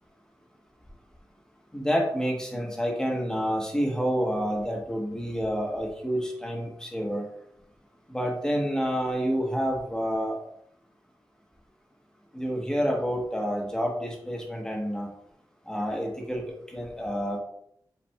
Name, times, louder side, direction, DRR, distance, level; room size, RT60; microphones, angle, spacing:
voice 1, 1.7-7.3 8.1-10.4 12.3-15.1 15.7-17.4, equal, 10° left, -1 dB, 1.0 m, -28 dB
5.4 x 4.1 x 2.2 m, 0.71 s
wide cardioid pair, 110°, 8 cm